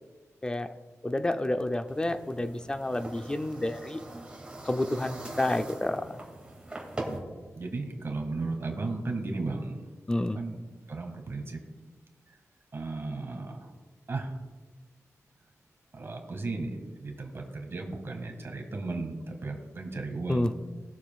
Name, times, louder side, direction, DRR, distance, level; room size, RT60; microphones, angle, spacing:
voice 1, 0.4-0.7 1.0-4.0 4.6-6.2 10.1-10.4 20.3-20.5, left 1 dB, 15° left, 8 dB, 0.5 m, -29 dB
sound 1, 1.9-7.2, right 2 dB, 20° right, 2.3 m, -42 dB
voice 2, 7.5-9.8 10.4-10.5 10.9-11.6 12.7-13.6 14.1-14.3 15.9-20.5, right 3 dB, 50° right, 2 dB, 1.9 m, -35 dB
20.5 x 7.2 x 2.4 m, 1.3 s
wide cardioid pair, 115°, 5 cm